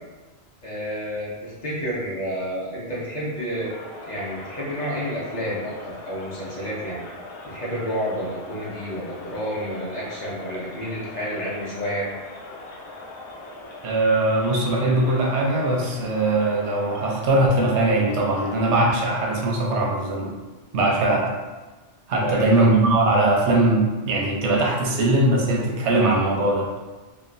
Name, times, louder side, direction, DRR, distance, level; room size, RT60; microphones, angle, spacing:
voice 1, 0.6-3.8 4.0-7.0 7.4-12.1 22.2-22.7, equal, 50° left, -6 dB, 0.6 m, -30 dB
Crowd, 3.3-19.6, left 2 dB, 90° left, 0.9 m, -41 dB
voice 2, 13.8-20.3 20.7-21.3 22.1-26.7, right 2 dB, 85° right, -2 dB, 0.9 m, -21 dB
2.9 x 2.2 x 2.5 m, 1.2 s
omnidirectional pair, 1.1 m